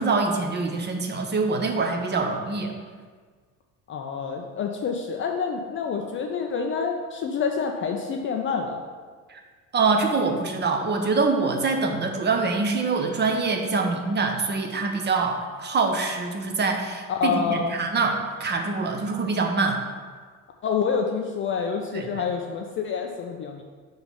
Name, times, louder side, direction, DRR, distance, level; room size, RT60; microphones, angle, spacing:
voice 1, 0.0-2.7 9.3-9.4 9.7-19.8 21.9-22.2, right 4 dB, 25° right, 3 dB, 0.7 m, -25 dB
voice 2, 3.9-8.8 17.1-17.7 20.6-23.6, left 6 dB, 30° left, 3 dB, 0.5 m, -27 dB
4.7 x 3.9 x 5.5 m, 1.5 s
figure-of-eight pair, 65°, 43 cm